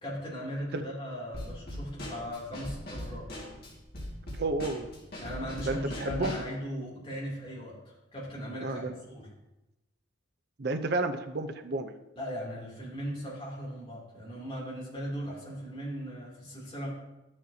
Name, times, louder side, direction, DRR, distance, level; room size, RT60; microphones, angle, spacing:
voice 1, 0.0-3.3 5.2-8.8 9.1-9.3 12.1-16.9, equal, 25° left, -6 dB, 2.9 m, -38 dB
Drum kit / Snare drum, 1.3-6.5, left 1 dB, 50° left, 2.0 m, -40 dB
voice 2, 4.4-4.9 5.6-6.4 8.6-8.9 10.6-12.0, right 2 dB, 50° right, 6 dB, 0.6 m, -31 dB
12.0 x 6.5 x 2.8 m, 0.98 s
head